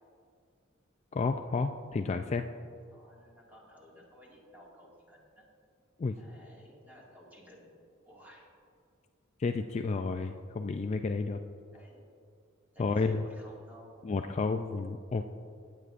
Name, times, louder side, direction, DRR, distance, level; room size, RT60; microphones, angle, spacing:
voice 1, 1.1-2.5 6.0-6.1 9.4-11.4 12.8-13.3 14.0-15.3, left 4 dB, 35° left, 6 dB, 0.3 m, -31 dB
voice 2, 2.9-5.4 6.2-7.8 8.0-8.5 11.7-12.1 12.7-14.3, equal, 10° right, -4 dB, 2.0 m, -56 dB
18.5 x 8.3 x 2.5 m, 2.4 s
head